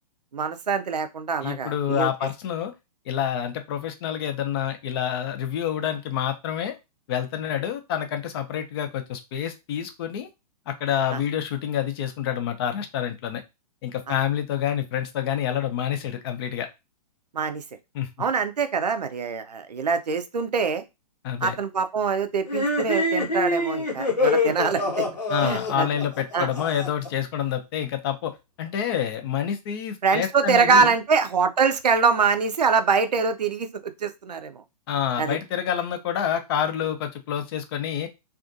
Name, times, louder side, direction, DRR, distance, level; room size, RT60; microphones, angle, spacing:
voice 1, 0.3-2.1 11.1-11.2 14.1-14.2 17.3-17.6 18.2-20.8 21.4-25.1 25.4-25.9 26.3-26.5 30.0-34.6 35.2-35.4, right 5 dB, 80° right, 9 dB, 0.4 m, -24 dB
voice 2, 1.4-2.7 3.1-6.7 7.1-10.3 10.7-13.4 13.8-16.7 17.9-18.1 21.2-21.6 25.3-28.3 28.6-30.9 34.9-38.1, left 9 dB, 35° left, 7 dB, 0.5 m, -27 dB
sound 1, 22.5-27.1, left 2 dB, 85° left, 1.0 m, -25 dB
2.5 x 2.3 x 2.5 m, 0.23 s
figure-of-eight pair, 115°, 21 cm